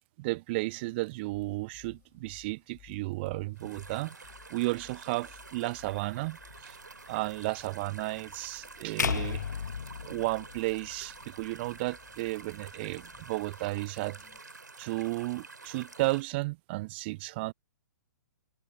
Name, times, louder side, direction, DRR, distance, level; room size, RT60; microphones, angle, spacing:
voice 1, 0.2-6.4 6.6-6.8 7.1-9.4 10.0-14.2 14.8-17.5, right 22 dB, 35° right, 0.5 m, -33 dB
sound 1, 1.3-14.4, left 18 dB, 25° left, 5.5 m, -60 dB
sound 2, 3.5-16.2, right 3 dB, 80° right, 3.8 m, -49 dB
sound 3, 9.0-11.2, left 7 dB, 70° left, 0.4 m, -33 dB
figure-of-eight pair, 120°, 10 cm